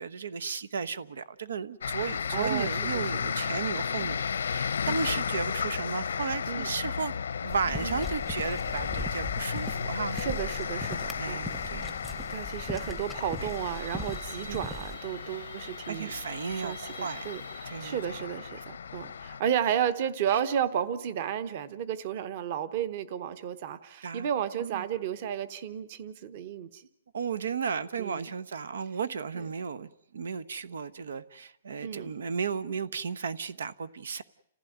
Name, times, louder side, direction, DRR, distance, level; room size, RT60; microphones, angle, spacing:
voice 1, 0.0-7.1 7.4-10.2 11.2-12.0 13.4-13.5 14.4-14.7 15.9-17.3 17.7-18.2 18.6-18.7 20.3-20.4 24.0-24.3 24.6-24.9 27.1-29.9 30.1-34.2, right 5 dB, 80° right, 1.0 m, -34 dB
sound 1, 1.8-19.4, left 6 dB, 90° left, 0.9 m, -34 dB
voice 2, 2.0-3.4 6.5-6.7 7.8-8.0 9.4-9.5 10.1-11.4 12.3-16.1 16.6-26.8 28.0-28.3 31.8-32.1, right 9 dB, 35° right, 1.1 m, -33 dB
sound 2, 7.5-15.0, left 1 dB, ahead, 0.8 m, -40 dB
sound 3, 13.5-18.3, right 3 dB, 60° right, 7.6 m, -50 dB
30.0 x 15.5 x 9.4 m
hypercardioid pair, 175°, 0 cm